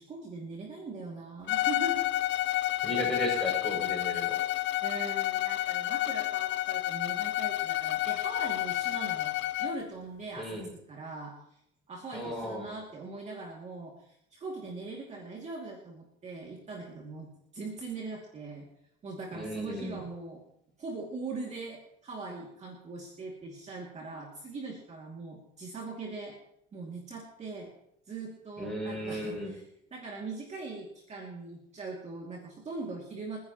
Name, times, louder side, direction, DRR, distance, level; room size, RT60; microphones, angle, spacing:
voice 1, 0.0-2.1 4.1-4.5 4.8-10.6 10.9-11.3 11.9-18.7 19.0-20.4 20.8-26.4 26.7-27.7 28.1-29.6 29.9-33.4, right 3 dB, 30° right, -1 dB, 2.6 m, -41 dB
Bowed string instrument, 1.5-9.8, left 16 dB, 60° left, 0.6 m, -30 dB
voice 2, 2.8-4.4 10.4-10.7 12.1-12.7 19.3-20.0 28.6-29.5, equal, ahead, -3 dB, 7.1 m, -35 dB
28.5 x 10.0 x 3.1 m, 0.75 s
cardioid pair, 140°, 21 cm